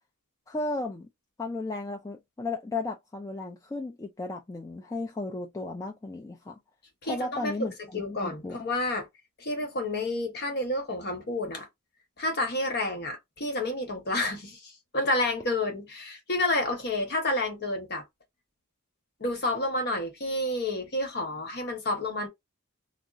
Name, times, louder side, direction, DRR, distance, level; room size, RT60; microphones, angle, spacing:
voice 1, 0.5-1.1 1.4-6.6 7.1-8.6, left 2 dB, 15° left, 0.3 m, -34 dB
voice 2, 7.0-7.7 7.9-9.1 9.4-11.7 12.2-18.0 19.2-22.3, left 2 dB, 45° left, 1.0 m, -30 dB
2.3 x 2.0 x 3.8 m
head